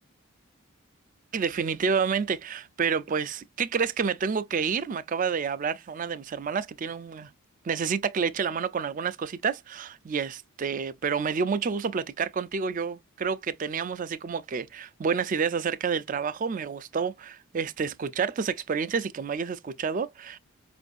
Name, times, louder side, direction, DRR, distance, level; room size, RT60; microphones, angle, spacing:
voice 1, 1.3-7.3 7.6-20.4, right 6 dB, 35° right, 0.3 m, -29 dB
5.2 x 2.5 x 2.4 m
head